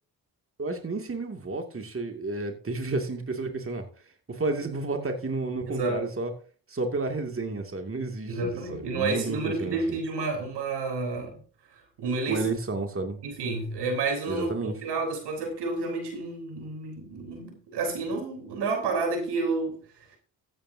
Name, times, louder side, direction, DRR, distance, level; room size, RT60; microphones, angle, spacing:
voice 1, 0.6-3.9 4.3-6.3 6.7-10.0 12.3-13.2 14.3-14.7, right 3 dB, 30° right, 4 dB, 2.5 m, -31 dB
voice 2, 5.7-6.0 8.3-11.4 11.7-12.5 13.2-20.2, right 3 dB, 75° right, 2 dB, 3.9 m, -30 dB
15.0 x 9.0 x 2.8 m, 0.40 s
hypercardioid pair, 45°, 41 cm